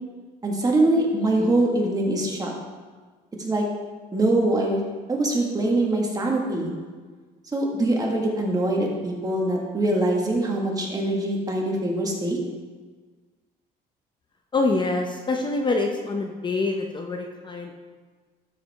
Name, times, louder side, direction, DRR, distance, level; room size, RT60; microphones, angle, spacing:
voice 1, 0.4-2.5 3.4-3.7 4.1-6.7 7.5-12.4, right 1 dB, 20° right, -1 dB, 1.7 m, -23 dB
voice 2, 14.5-17.9, left 3 dB, 25° left, 2 dB, 0.7 m, -26 dB
12.5 x 4.9 x 3.5 m, 1.4 s
cardioid pair, 110°, 17 cm